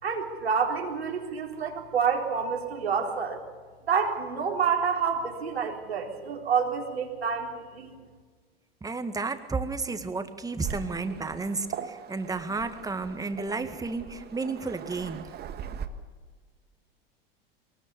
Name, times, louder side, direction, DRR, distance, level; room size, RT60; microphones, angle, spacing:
voice 1, 0.0-3.4 3.9-7.9, right 6 dB, 90° right, 1 dB, 3.9 m, -28 dB
voice 2, 8.8-15.3, right 3 dB, 10° right, 8 dB, 1.9 m, -32 dB
Waves surf, 10.6-15.9, right 8 dB, 30° right, 1.8 m, -40 dB
23.0 x 20.0 x 7.0 m, 1.5 s
hypercardioid pair, 100°, 30 cm